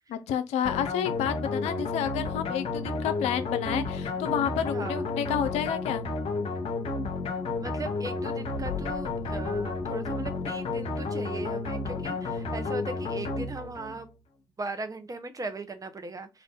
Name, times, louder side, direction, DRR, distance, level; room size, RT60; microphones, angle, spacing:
voice 1, 0.1-6.0, left 9 dB, 75° left, 0.4 m, -30 dB
sound 1, 0.6-14.0, left 3 dB, 60° left, 0.9 m, -32 dB
voice 2, 7.6-14.1 14.6-16.3, right 3 dB, 30° right, 0.8 m, -38 dB
sound 2, 8.5-11.2 11.5-11.6, left 5 dB, 85° right, 0.7 m, -44 dB
2.6 x 2.4 x 3.5 m
hypercardioid pair, 40°, 11 cm